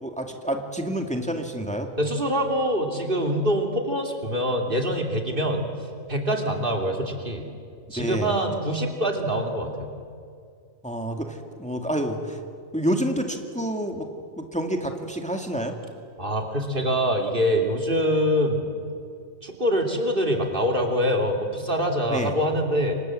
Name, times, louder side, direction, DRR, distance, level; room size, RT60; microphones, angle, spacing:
voice 1, 0.0-1.9 8.0-8.4 10.8-12.4 12.7-14.1 14.4-15.7 22.1-22.3, right 1 dB, 5° left, 3 dB, 2.1 m, -28 dB
voice 2, 2.0-5.7 6.1-7.5 7.9-9.9 16.2-18.7 19.4-22.9, equal, 40° right, 2 dB, 3.0 m, -24 dB
28.5 x 25.5 x 7.6 m, 2.3 s
omnidirectional pair, 1.4 m